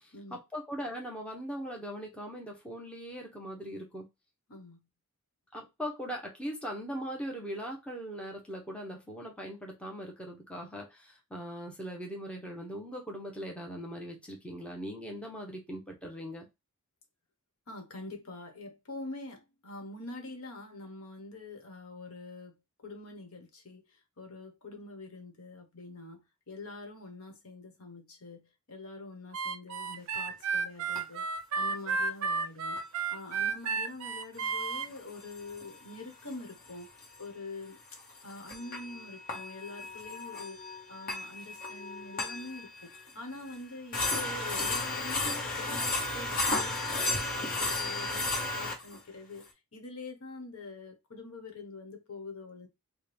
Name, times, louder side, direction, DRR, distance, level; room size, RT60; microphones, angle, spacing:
voice 1, 0.0-4.1 5.5-16.5, equal, 5° left, 0.7 m, -40 dB
voice 2, 4.5-4.8 17.7-23.8 24.2-31.3 31.6-32.8 33.1-36.9 37.2-37.8 38.2-52.7, left 2 dB, 70° left, 1.1 m, -45 dB
Harmonica, 29.3-34.9, right 5 dB, 75° right, 0.5 m, -32 dB
sound 1, 30.1-30.2 31.0-31.1 32.8-32.9 34.7-35.9 36.3-36.4 36.7-36.8 37.0-37.2 38.0-43.1 43.5-43.6 43.9-49.0, left 2 dB, 40° left, 1.1 m, -34 dB
4.3 x 2.2 x 3.4 m
head